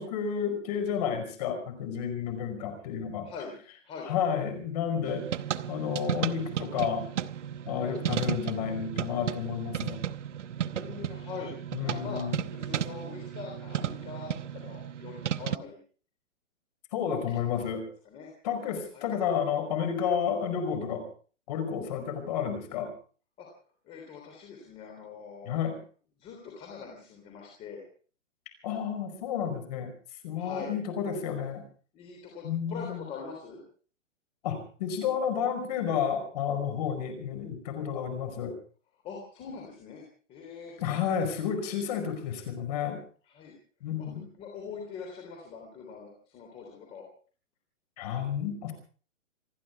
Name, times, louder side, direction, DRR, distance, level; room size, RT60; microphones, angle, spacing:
voice 1, 0.0-3.3 4.1-5.3 5.7-7.1 7.7-10.0 11.7-12.4 16.9-17.8 18.4-21.1 21.5-22.9 25.4-25.8 28.6-29.9 30.2-31.7 32.4-33.0 34.4-38.5 40.8-43.0 43.8-44.3 48.0-48.7, left 7 dB, 30° left, 8 dB, 5.2 m, -31 dB
voice 2, 3.2-3.6 3.8-4.1 7.9-8.0 10.7-12.2 12.5-15.8 17.3-17.5 18.0-18.3 18.9-19.1 23.4-23.5 23.8-25.6 26.2-27.8 30.4-30.8 31.9-33.6 39.0-40.0 40.3-40.7 43.3-43.5 44.0-44.1 44.4-47.0, left 5 dB, 15° left, 1 dB, 3.3 m, -43 dB
sound 1, 5.0-15.6, right 9 dB, 70° right, 1.0 m, -34 dB
28.0 x 11.0 x 4.7 m, 0.42 s
hypercardioid pair, 165°, 38 cm